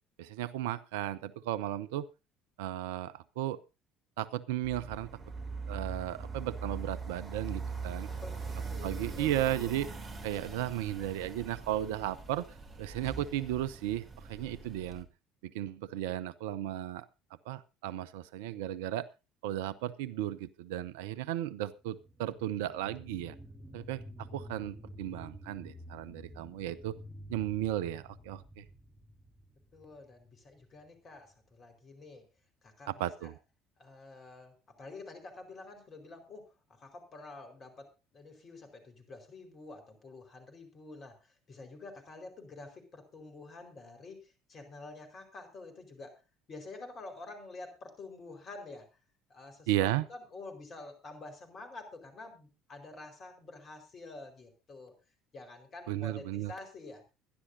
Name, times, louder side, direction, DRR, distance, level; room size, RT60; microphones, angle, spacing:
voice 1, 0.2-2.1 2.6-3.6 4.2-5.1 5.7-8.1 8.8-9.9 10.2-12.5 12.8-15.1 15.4-17.1 17.5-19.1 19.4-23.3 23.7-26.9 27.3-28.6 32.9-33.4 49.7-50.1 55.9-56.5, right 13 dB, 70° right, 16 dB, 0.6 m, -35 dB
sound 1, 4.6-15.0, right 4 dB, 35° right, 2.9 m, -41 dB
voice 2, 8.1-9.7 29.7-32.2 32.6-32.9 33.2-33.3 33.8-46.2 46.5-48.9 49.3-54.9 55.3-57.0, left 3 dB, 40° left, 6 dB, 4.6 m, -48 dB
sound 2, 21.8-30.9 31.3-31.4, equal, 10° right, 7.1 m, -50 dB
23.0 x 11.0 x 2.7 m, 0.27 s
figure-of-eight pair, 55°, 0 cm